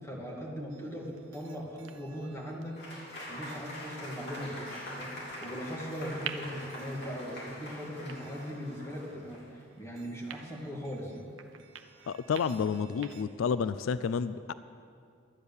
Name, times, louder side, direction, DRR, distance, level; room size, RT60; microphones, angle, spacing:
voice 1, 0.0-2.8 3.3-4.6 5.0-5.1 5.4-11.2, equal, 15° left, -2 dB, 2.0 m, -39 dB
sound 1, 0.7-13.2, right 8 dB, 70° right, 0.7 m, -50 dB
Applause / Crowd, 2.8-9.6, left 1 dB, 55° left, 3.3 m, -44 dB
voice 2, 12.1-14.5, left 6 dB, 80° left, 14 dB, 0.3 m, -30 dB
12.5 x 9.6 x 6.9 m, 2.3 s
head